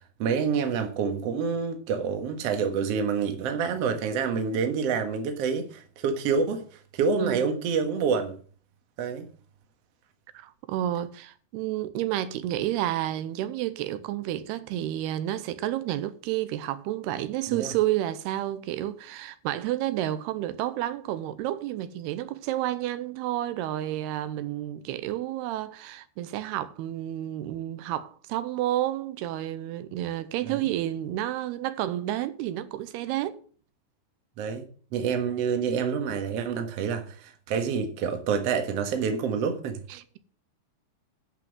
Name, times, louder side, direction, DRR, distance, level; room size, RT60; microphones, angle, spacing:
voice 1, 0.2-8.4 9.0-9.3 17.5-17.7 30.4-30.6 34.4-34.7 34.9-39.8, right 6 dB, 55° right, 2.0 m, -27 dB
voice 2, 10.3-33.4 39.9-40.2, right 13 dB, 90° right, 2.8 m, -30 dB
11.0 x 6.0 x 7.9 m
omnidirectional pair, 4.6 m